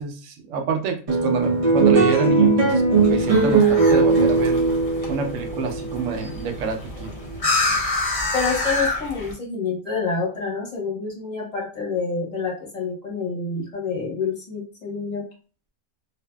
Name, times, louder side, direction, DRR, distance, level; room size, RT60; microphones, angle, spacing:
voice 1, 0.0-4.6 5.1-7.1, right 5 dB, 70° right, 4 dB, 0.8 m, -27 dB
sound 1, 1.1-7.7, right 4 dB, 50° right, 0.4 m, -19 dB
sound 2, 2.9-9.3, left 2 dB, 50° left, 0.4 m, -28 dB
voice 2, 8.3-15.2, left 4 dB, 30° left, -3 dB, 0.9 m, -27 dB
2.6 x 2.5 x 2.2 m, 0.38 s
omnidirectional pair, 1.6 m